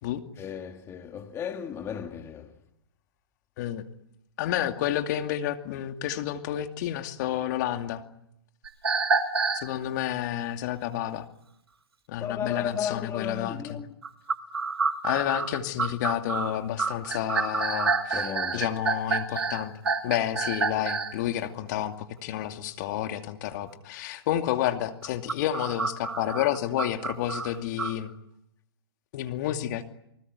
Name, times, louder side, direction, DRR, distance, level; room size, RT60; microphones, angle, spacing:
voice 1, 0.4-2.5 12.2-13.9 18.1-18.7 19.3-19.4, left 8 dB, 20° left, 1.6 m, -34 dB
voice 2, 4.4-8.0 9.6-11.3 12.1-13.8 15.0-19.7 20.0-28.1 29.1-29.9, left 12 dB, 45° left, 2.5 m, -30 dB
sound 1, 8.6-9.7 14.0-21.2 25.0-27.9, right 4 dB, 85° right, 4.8 m, -28 dB
28.5 x 20.0 x 9.7 m
hypercardioid pair, 130°, 13 cm